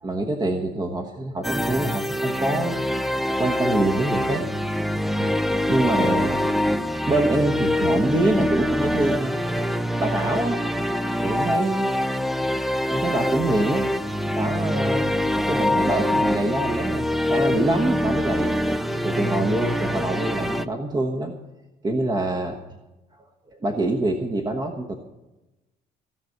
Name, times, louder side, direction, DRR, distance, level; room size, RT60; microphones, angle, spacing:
voice 1, 0.0-2.8 3.4-4.5 5.2-5.3 5.7-6.5 7.1-9.4 10.0-10.6 11.2-11.9 12.9-13.9 14.3-15.1 15.4-18.6 19.0-21.3 21.8-22.6 23.6-24.9, right 2 dB, 25° right, 3 dB, 1.3 m, -25 dB
sound 1, 1.4-20.7, left 1 dB, ahead, 0.5 m, -24 dB
16.5 x 6.2 x 9.4 m, 1.0 s
cardioid pair, 110°, 17 cm